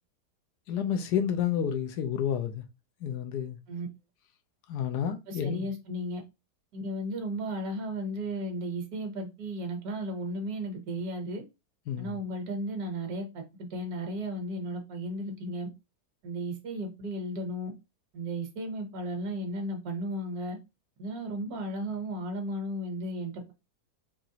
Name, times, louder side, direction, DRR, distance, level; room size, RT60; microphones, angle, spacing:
voice 1, 0.7-2.6 3.0-3.6 4.7-5.7 11.9-12.2, left 8 dB, 85° left, 1.3 m, -30 dB
voice 2, 5.3-6.2 6.7-11.4 12.0-15.7 16.2-17.7 18.1-20.6 21.0-23.5, right 1 dB, 70° right, 1.5 m, -34 dB
4.8 x 3.0 x 2.8 m
omnidirectional pair, 1.7 m